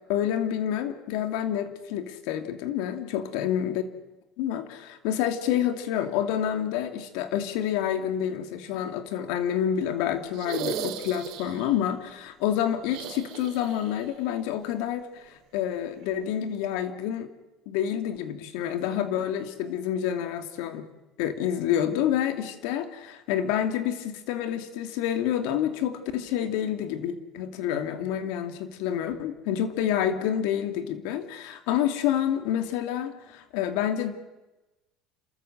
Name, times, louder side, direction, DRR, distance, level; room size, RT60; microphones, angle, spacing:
voice 1, 0.1-3.8 4.4-17.3 17.7-20.9 21.2-34.1, left 10 dB, 80° left, 9 dB, 2.4 m, -28 dB
sound 1, 10.3-11.7 12.8-14.0 14.3-14.4 16.0-16.1, right 9 dB, 65° right, 3.3 m, -36 dB
29.5 x 13.5 x 7.9 m, 1.1 s
cardioid pair, 125°, 0 cm